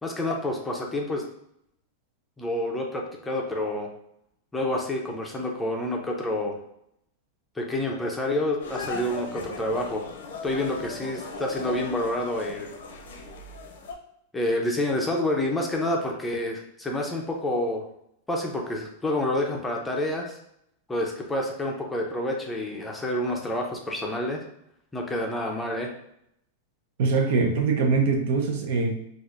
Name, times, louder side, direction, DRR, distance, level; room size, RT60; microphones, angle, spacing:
voice 1, 0.0-1.2 2.4-3.9 4.5-6.6 7.6-10.1 10.4-12.7 14.3-17.8 18.3-20.4 20.9-24.4 24.9-25.9, left 1 dB, 10° left, 0 dB, 0.5 m, -28 dB
sound 1, 8.6-13.9, left 4 dB, 85° left, 0.6 m, -38 dB
voice 2, 27.0-29.0, right 4 dB, 65° right, 3 dB, 0.7 m, -23 dB
4.1 x 2.4 x 2.4 m, 0.76 s
supercardioid pair, 145°, 0 cm